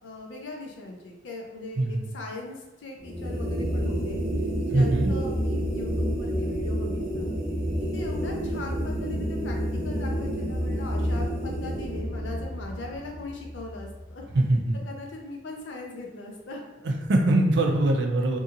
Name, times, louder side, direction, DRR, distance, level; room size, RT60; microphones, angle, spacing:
voice 1, 0.0-4.2 4.7-7.3 7.9-9.6 9.8-14.2 14.9-16.6, left 2 dB, 90° left, 1 dB, 0.6 m, -40 dB
voice 2, 1.8-2.1 4.7-5.1 14.3-14.8 16.8-18.4, right 2 dB, 65° right, 2 dB, 0.5 m, -22 dB
sound 1, 3.0-14.3, equal, 5° right, 0.5 m, -29 dB
2.7 x 2.7 x 2.5 m, 1.1 s
head